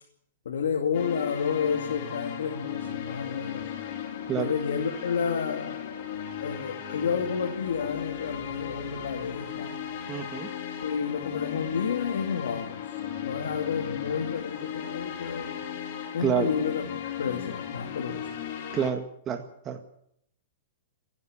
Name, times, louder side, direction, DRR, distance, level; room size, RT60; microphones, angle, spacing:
voice 1, 0.4-3.6 4.4-9.7 10.8-12.9 13.2-15.6 16.1-18.3, left 6 dB, 80° left, 2 dB, 2.7 m, -30 dB
sound 1, 0.9-18.9, left 9 dB, 55° left, 3.7 m, -36 dB
voice 2, 10.1-10.5 16.2-16.5 18.7-19.8, right 8 dB, 25° right, 4 dB, 1.8 m, -28 dB
28.0 x 11.0 x 9.0 m, 0.74 s
hypercardioid pair, 130°, 0 cm